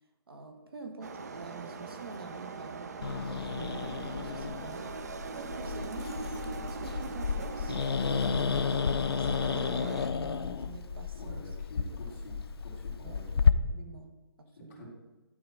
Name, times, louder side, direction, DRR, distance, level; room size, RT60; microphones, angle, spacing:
voice 1, 0.3-6.3 6.6-7.8 8.2-8.8 9.2-11.5 11.9-12.1 13.0-14.9, right 4 dB, 65° right, 5 dB, 1.4 m, -47 dB
sound 1, 1.0-10.1, right 4 dB, 40° right, 0.5 m, -41 dB
Growling, 3.0-13.5, left 6 dB, 75° left, 0.6 m, -31 dB
voice 2, 11.1-12.4 12.6-13.4 14.7-14.9, equal, 30° left, -5 dB, 2.6 m, -47 dB
11.5 x 4.0 x 6.2 m, 1.1 s
hypercardioid pair, 175°, 13 cm